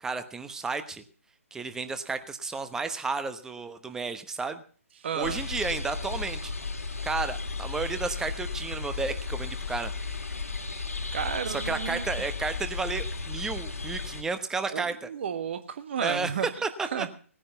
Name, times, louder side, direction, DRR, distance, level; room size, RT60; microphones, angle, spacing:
voice 1, 0.0-1.0 1.5-4.6 5.1-6.5 7.0-9.9 11.5-15.1 16.0-16.3 16.6-17.1, right 4 dB, 5° right, 10 dB, 1.0 m, -32 dB
voice 2, 5.0-5.4 11.1-12.1 14.7-16.5 16.9-17.1, right 8 dB, 45° right, 10 dB, 1.6 m, -32 dB
sound 1, 5.2-14.2, left 4 dB, 75° left, 2.5 m, -34 dB
18.5 x 10.0 x 5.6 m, 0.43 s
figure-of-eight pair, 135°, 8 cm